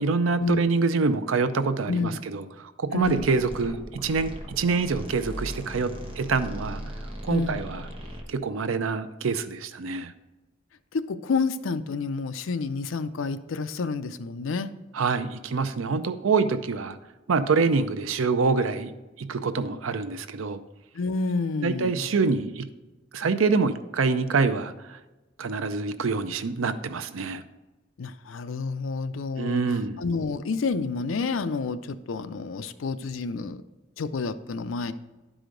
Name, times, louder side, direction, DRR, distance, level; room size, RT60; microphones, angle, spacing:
voice 1, 0.0-6.8 7.2-7.9 8.3-10.1 14.9-17.0 17.3-18.9 19.2-20.6 21.6-22.7 23.1-25.0 25.4-27.4 29.4-30.0, right 4 dB, 85° right, 11 dB, 0.5 m, -26 dB
voice 2, 2.9-3.3 7.3-7.6 10.9-14.7 20.9-22.1 28.0-33.6 34.0-34.9, left 4 dB, 75° left, 12 dB, 0.5 m, -29 dB
sound 1, 3.0-8.2, equal, 30° right, 1.1 m, -38 dB
11.0 x 4.9 x 3.8 m, 1.1 s
head